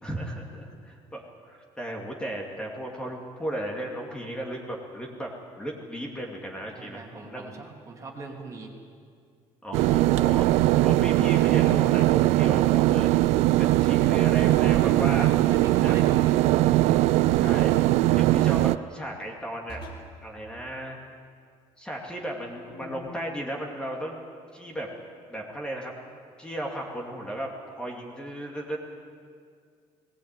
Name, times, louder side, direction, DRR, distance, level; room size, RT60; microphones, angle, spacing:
voice 1, 0.0-5.3 5.6-7.5 9.6-10.5 10.8-13.1 13.6-15.3 15.8-16.0 17.3-17.7 18.1-19.8 20.2-21.0 21.8-24.2 24.5-24.9 25.3-25.9 26.4-28.8, right 1 dB, 10° left, -1 dB, 2.5 m, -35 dB
voice 2, 6.7-8.7 10.3-10.9 14.6-16.4, right 3 dB, 25° right, 0 dB, 2.8 m, -41 dB
sound 1, 9.7-18.8, right 16 dB, 75° right, 0.5 m, -21 dB
sound 2, 17.7-18.2 19.7-20.2 22.7-23.4, left 1 dB, 50° left, 4.0 m, -44 dB
19.5 x 18.0 x 9.0 m, 2.2 s
cardioid pair, 145°, 12 cm